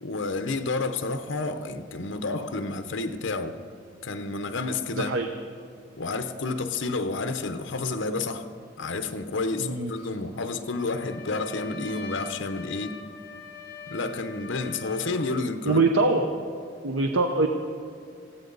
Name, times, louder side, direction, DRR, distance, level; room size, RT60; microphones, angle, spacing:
voice 1, 0.0-3.5 4.0-5.2 6.0-8.5 8.8-13.0 13.9-15.8, left 3 dB, 70° left, 0.8 m, -30 dB
voice 2, 4.9-5.3 9.6-9.9 15.6-16.4 16.8-17.5, right 3 dB, 80° right, 0.8 m, -23 dB
Trumpet, 10.7-15.5, left 5 dB, 55° left, 2.9 m, -43 dB
19.5 x 15.0 x 4.0 m
head